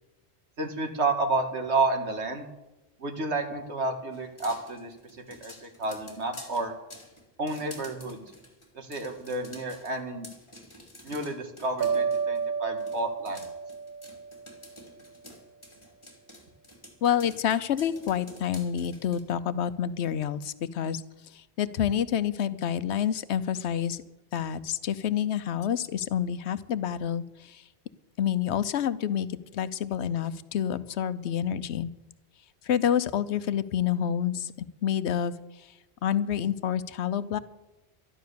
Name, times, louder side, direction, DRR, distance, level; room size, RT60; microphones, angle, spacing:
voice 1, 0.6-2.5 3.0-5.0 5.3-6.7 7.4-8.2 8.7-10.3 11.0-13.4, right 3 dB, 85° right, 5 dB, 2.0 m, -30 dB
sound 1, 4.1-12.5 12.8-19.2, left 1 dB, 25° left, 2.4 m, -49 dB
sound 2, 11.8-14.9, right 6 dB, 60° right, 1.0 m, -31 dB
voice 2, 17.0-21.0 21.3-24.0 24.3-27.6 28.2-29.3 29.5-31.9 32.6-35.3 36.0-37.4, left 9 dB, 90° left, 14 dB, 1.0 m, -28 dB
12.5 x 11.5 x 6.8 m, 1.0 s
omnidirectional pair, 1.1 m